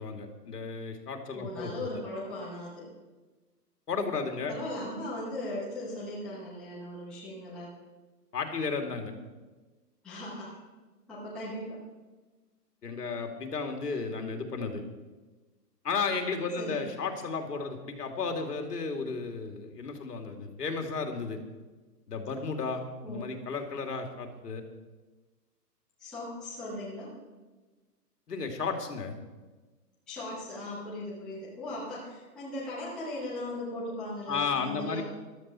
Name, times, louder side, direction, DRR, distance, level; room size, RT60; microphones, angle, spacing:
voice 1, 0.0-1.9 3.9-4.5 8.3-9.1 12.8-14.8 15.8-21.4 22.1-24.6 28.3-29.2 34.3-35.0, left 4 dB, 75° left, 5 dB, 2.6 m, -33 dB
voice 2, 1.3-2.9 4.5-7.7 10.0-10.6 11.1-11.8 16.6-16.8 23.0-23.2 26.0-27.1 30.1-35.0, left 1 dB, ahead, -11 dB, 1.0 m, -38 dB
15.0 x 12.5 x 4.4 m, 1.2 s
hypercardioid pair, 175°, 48 cm